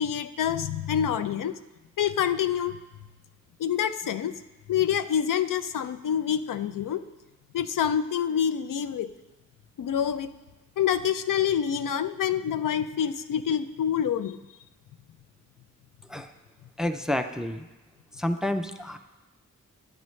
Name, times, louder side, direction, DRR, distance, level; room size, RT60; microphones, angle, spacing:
voice 1, 0.0-1.5 2.0-2.8 3.6-4.3 4.7-7.0 7.5-9.1 9.8-10.3 10.8-14.4, left 9 dB, 85° left, 11 dB, 0.5 m, -26 dB
voice 2, 16.8-17.7 18.2-19.0, left 1 dB, ahead, 8 dB, 0.4 m, -29 dB
10.5 x 9.9 x 3.1 m, 1.1 s
wide cardioid pair, 120°, 31 cm